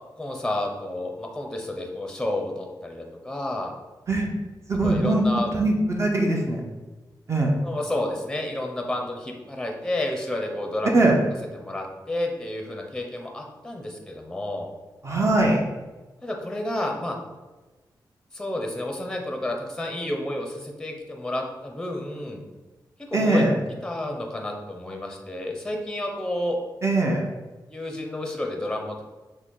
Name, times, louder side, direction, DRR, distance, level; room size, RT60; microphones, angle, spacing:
voice 1, 0.2-3.7 4.8-5.5 7.6-11.0 11.5-14.7 16.2-17.2 18.3-22.4 23.1-23.4 23.8-26.6 27.7-29.0, left 1 dB, 5° left, 2 dB, 0.6 m, -30 dB
voice 2, 4.7-5.2 5.5-6.6 7.3-7.5 10.9-11.2 15.0-15.6 23.1-23.5 26.8-27.2, right 2 dB, 40° right, 0 dB, 0.7 m, -21 dB
6.0 x 2.1 x 3.8 m, 1.2 s
wide cardioid pair, 125°, 8 cm